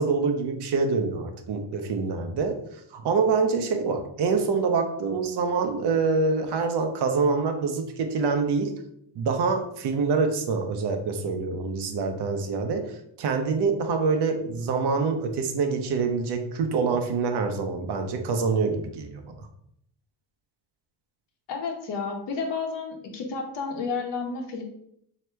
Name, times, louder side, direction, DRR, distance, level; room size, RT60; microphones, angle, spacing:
voice 1, 0.0-2.6 2.9-8.7 9.1-19.5, right 4 dB, 65° right, 5 dB, 0.8 m, -26 dB
voice 2, 21.5-24.6, left 4 dB, 75° left, 2 dB, 1.0 m, -31 dB
3.2 x 2.9 x 4.5 m, 0.74 s
cardioid pair, 90°, 43 cm